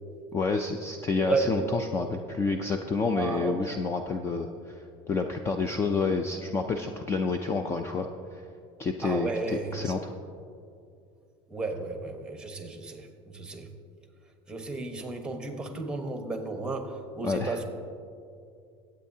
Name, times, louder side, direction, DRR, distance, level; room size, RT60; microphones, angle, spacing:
voice 1, 0.3-4.8 5.1-8.4 8.8-10.1 17.2-17.6, left 4 dB, 20° left, 5 dB, 0.5 m, -29 dB
voice 2, 1.2-1.7 3.1-3.6 9.0-9.9 11.5-13.7 14.5-17.6, right 3 dB, 5° right, 5 dB, 1.1 m, -33 dB
21.5 x 8.6 x 2.8 m, 2.4 s
cardioid pair, 145°, 13 cm